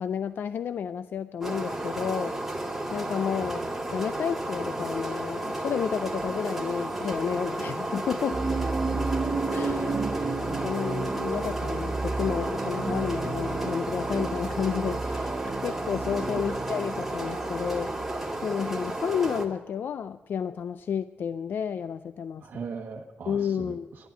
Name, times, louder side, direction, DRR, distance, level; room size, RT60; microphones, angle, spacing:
voice 1, 0.0-2.4 2.9-3.6 3.9-8.4 9.5-15.3 15.6-17.9 18.4-22.5 23.3-23.9, left 7 dB, 70° left, 13 dB, 0.4 m, -31 dB
sound 1, 1.4-19.5, right 1 dB, 5° right, 2.3 m, -33 dB
voice 2, 3.4-3.8 9.9-10.1 16.4-16.5 22.4-24.1, right 5 dB, 70° right, -1 dB, 1.1 m, -39 dB
sound 2, 6.2-6.4 7.1-7.4 8.1-8.3 8.9-9.0 9.7-9.8 10.5-10.6 11.2-11.5 12.2-12.3 12.9-13.0 13.5-13.7 14.1-14.3 14.8-15.0 15.4-15.7 16.4-16.6, left 3 dB, 40° left, 4.0 m, -50 dB
sound 3, 8.3-18.3, right 4 dB, 40° right, 0.8 m, -32 dB
11.0 x 11.0 x 8.9 m, 1.3 s
cardioid pair, 85°, 4 cm